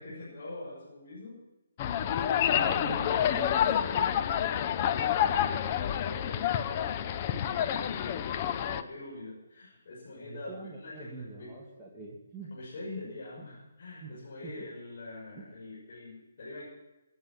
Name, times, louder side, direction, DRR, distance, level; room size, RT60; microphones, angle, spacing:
voice 1, 0.0-1.4 2.1-11.5 12.5-16.7, left 2 dB, 60° left, -6 dB, 6.3 m, -45 dB
sound 1, 1.8-8.8, left 9 dB, 30° left, 0.7 m, -28 dB
voice 2, 2.5-3.6 8.4-8.5 10.2-12.5 14.0-14.1 14.4-14.5 15.4-15.5, right 2 dB, 10° right, -6 dB, 2.5 m, -43 dB
19.0 x 9.3 x 6.0 m, 1.1 s
hypercardioid pair, 155°, 0 cm